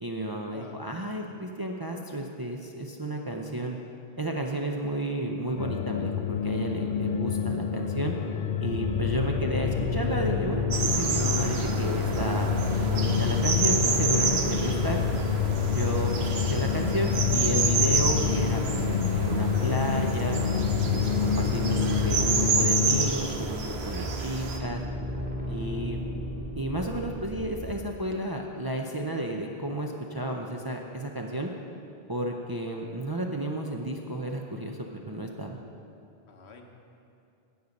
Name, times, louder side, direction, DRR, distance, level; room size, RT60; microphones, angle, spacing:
voice 1, 0.0-3.8 4.2-8.1 8.6-12.5 12.9-15.0 15.7-20.4 20.9-24.8 25.5-26.0 26.5-31.5 32.1-34.8 35.1-35.6, right 1 dB, 30° right, 1 dB, 0.4 m, -32 dB
sound 1, 5.6-23.1, left 7 dB, 65° left, 0.7 m, -28 dB
sound 2, 8.7-27.7, equal, 10° right, 1.2 m, -35 dB
sound 3, 10.7-24.6, right 4 dB, 75° right, 1.1 m, -30 dB
voice 2, 36.3-36.7, left 4 dB, 80° left, 3 dB, 1.3 m, -48 dB
9.4 x 8.3 x 5.2 m, 2.6 s
omnidirectional pair, 1.1 m